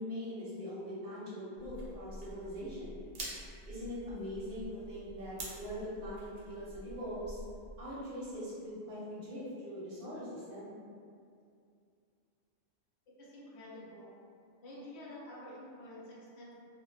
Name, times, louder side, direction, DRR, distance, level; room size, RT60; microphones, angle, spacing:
voice 1, 0.0-3.0 3.6-7.4 7.8-10.8, equal, 60° right, -8 dB, 0.7 m, -42 dB
sound 1, 1.6-7.9, right 1 dB, 90° right, 0.9 m, -47 dB
voice 2, 13.2-14.1 14.6-16.5, left 1 dB, 70° left, -6 dB, 0.8 m, -49 dB
2.1 x 2.1 x 3.1 m, 2.3 s
omnidirectional pair, 1.2 m